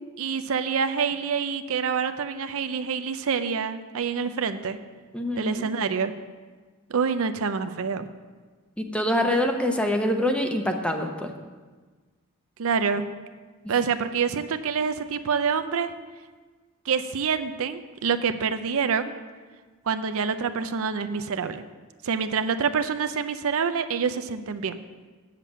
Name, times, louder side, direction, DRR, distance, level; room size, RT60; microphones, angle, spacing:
voice 1, 0.2-4.8 5.4-6.1 6.9-8.1 12.6-13.1 13.7-15.9 16.9-19.1 19.9-21.6 22.0-24.8, right 6 dB, 65° right, 10 dB, 0.5 m, -26 dB
voice 2, 5.1-5.7 8.8-11.3, left 1 dB, 5° left, 4 dB, 0.8 m, -25 dB
8.4 x 7.4 x 7.2 m, 1.4 s
head